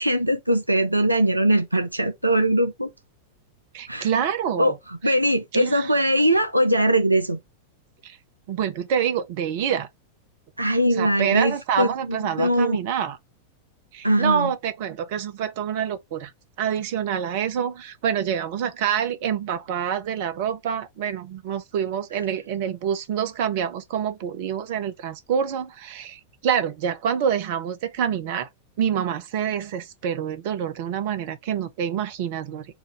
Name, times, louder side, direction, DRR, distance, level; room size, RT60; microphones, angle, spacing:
voice 1, 0.0-2.9 3.9-4.1 4.6-7.4 10.6-12.8 14.0-14.5, right 1 dB, 85° right, 0.5 m, -21 dB
voice 2, 3.7-4.7 5.5-5.9 8.0-8.2 8.5-9.9 11.0-13.2 13.9-16.3 16.6-28.5 28.8-32.7, right 8 dB, 50° right, 0.9 m, -26 dB
4.7 x 2.6 x 3.5 m
figure-of-eight pair, 90°, 0 cm